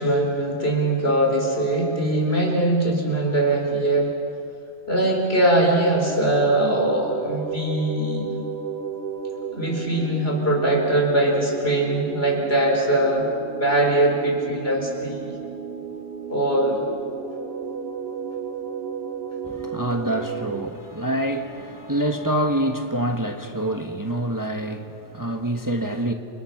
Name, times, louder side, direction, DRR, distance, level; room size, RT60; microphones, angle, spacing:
voice 1, 0.0-4.1 4.9-8.3 9.5-13.2 13.6-15.4 16.3-16.8, right 1 dB, 60° left, 4.7 m, -21 dB
sound 1, 5.7-20.7, right 6 dB, 60° right, 1.3 m, -33 dB
voice 2, 19.4-26.1, right 1 dB, 20° right, 1.2 m, -26 dB
29.0 x 26.0 x 6.0 m
omnidirectional pair, 1.2 m